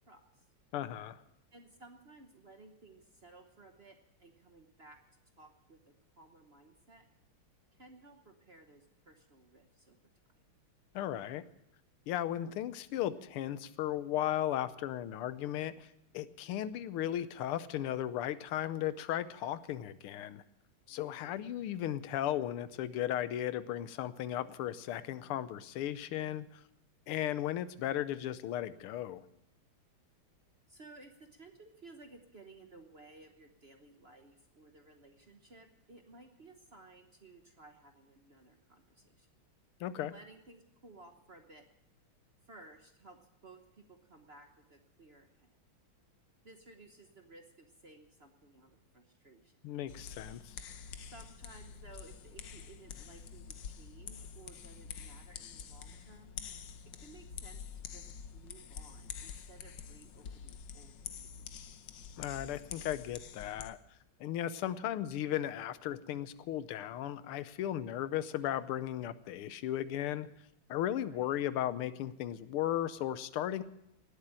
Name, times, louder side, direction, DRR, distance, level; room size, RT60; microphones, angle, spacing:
voice 1, 0.1-0.4 1.5-7.0 7.7-10.0 16.1-16.6 20.9-21.4 30.7-39.3 40.1-41.6 42.4-45.5 46.4-49.6 51.0-56.3 56.8-61.5 71.0-71.5, right 2 dB, 40° right, 5 dB, 1.0 m, -57 dB
voice 2, 0.7-1.2 10.9-11.4 12.1-15.9 16.1-20.4 20.9-26.6 27.1-29.2 39.8-40.1 49.6-50.7 62.2-63.8 64.2-70.3 70.7-73.6, left 12 dB, 85° left, 14 dB, 1.7 m, -36 dB
sound 1, 49.9-63.7, left 7 dB, 65° left, 1.5 m, -47 dB
18.5 x 8.3 x 8.8 m, 0.83 s
omnidirectional pair, 2.3 m